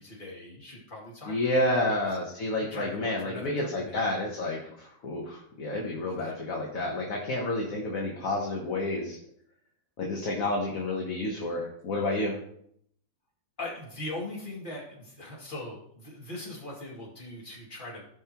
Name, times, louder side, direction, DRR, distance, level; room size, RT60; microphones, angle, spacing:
voice 1, 0.0-2.0 2.7-4.0 13.6-18.0, left 2 dB, 25° left, -4 dB, 2.5 m, -40 dB
voice 2, 1.3-9.2 10.0-12.4, left 1 dB, 50° left, -1 dB, 1.5 m, -30 dB
16.0 x 5.4 x 3.0 m, 0.69 s
omnidirectional pair, 2.1 m